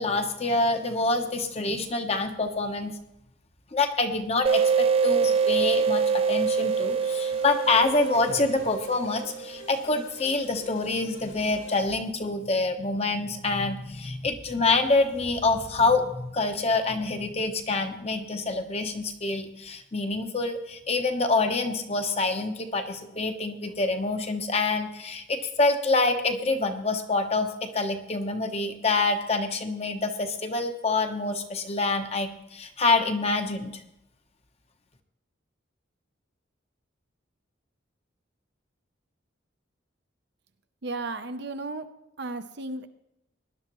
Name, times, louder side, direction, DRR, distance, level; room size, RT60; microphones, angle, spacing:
voice 1, 0.0-2.9 3.7-33.8, left 3 dB, 30° left, 6 dB, 0.9 m, -26 dB
sound 1, 4.5-9.8, right 6 dB, 30° right, 0.3 m, -25 dB
sound 2, 5.0-11.8, left 2 dB, 85° left, 3.3 m, -48 dB
voice 2, 40.8-42.9, right 2 dB, 60° right, 9 dB, 0.7 m, -34 dB
19.0 x 11.0 x 3.0 m, 0.87 s
head